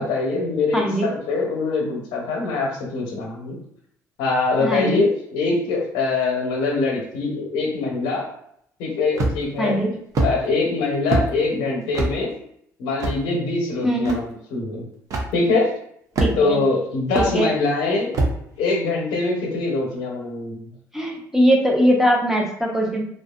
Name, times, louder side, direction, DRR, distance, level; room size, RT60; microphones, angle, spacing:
voice 1, 0.0-3.6 4.2-8.3 8.8-9.8 10.2-12.3 12.8-14.8 15.3-15.7 16.3-18.2 18.6-20.7, left 3 dB, 85° left, -1 dB, 0.7 m, -23 dB
voice 2, 0.7-1.1 4.6-5.0 9.6-9.9 13.8-14.1 16.2-16.6 17.2-17.5 20.9-23.0, equal, 5° right, 0 dB, 0.7 m, -20 dB
sound 1, 9.2-9.6 10.2-10.3 11.1-11.3 11.9-12.1 13.0-13.2 14.1-14.2 15.1-15.3 16.2-16.6 17.2-17.3 18.1-18.4, right 2 dB, 55° right, 0.6 m, -21 dB
2.7 x 2.3 x 2.3 m, 0.70 s
supercardioid pair, 80°, 7 cm